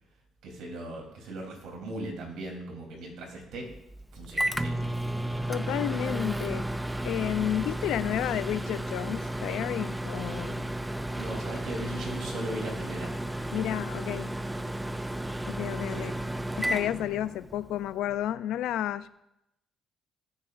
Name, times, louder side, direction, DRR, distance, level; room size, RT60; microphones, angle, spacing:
voice 1, 0.4-3.7 4.1-4.9 10.7-13.1 15.9-16.1, right 1 dB, 85° right, 0 dB, 3.3 m, -39 dB
Microwave oven, 3.7-17.7, right 1 dB, 5° right, 0.5 m, -33 dB
voice 2, 5.5-6.7 7.0-10.7 13.5-14.3 15.4-16.1 16.6-19.1, left 11 dB, 90° left, 15 dB, 0.4 m, -31 dB
19.5 x 7.3 x 2.6 m, 0.84 s
cardioid pair, 90°, 0 cm